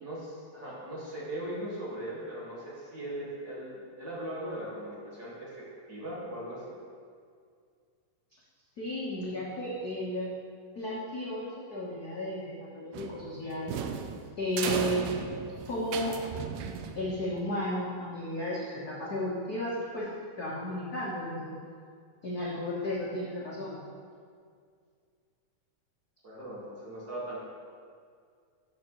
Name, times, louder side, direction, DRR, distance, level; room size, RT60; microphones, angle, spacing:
voice 1, 0.0-6.8 26.2-27.4, right 1 dB, 40° right, -7 dB, 2.0 m, -39 dB
voice 2, 8.8-10.3 10.7-13.7 14.4-15.0 15.6-16.1 16.9-20.1 20.4-21.6 22.2-23.8, left 1 dB, 70° left, -7 dB, 0.9 m, -33 dB
sound 1, 12.9-17.4, right 7 dB, 85° right, 2.2 m, -36 dB
13.0 x 6.3 x 3.1 m, 2.2 s
omnidirectional pair, 3.7 m